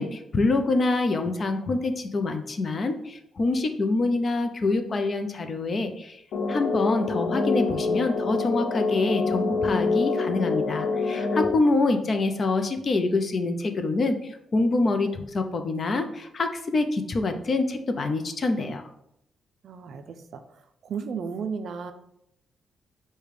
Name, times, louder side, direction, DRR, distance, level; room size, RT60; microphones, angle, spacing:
voice 1, 0.0-6.2 6.5-14.2 14.5-18.8, left 3 dB, 40° left, 7 dB, 0.5 m, -26 dB
sound 1, 6.3-11.5, left 4 dB, 90° left, 0.5 m, -26 dB
voice 2, 19.6-20.4 20.8-21.9, right 6 dB, 60° right, 9 dB, 0.4 m, -34 dB
5.0 x 2.2 x 4.8 m, 0.77 s
cardioid pair, 135°, 0 cm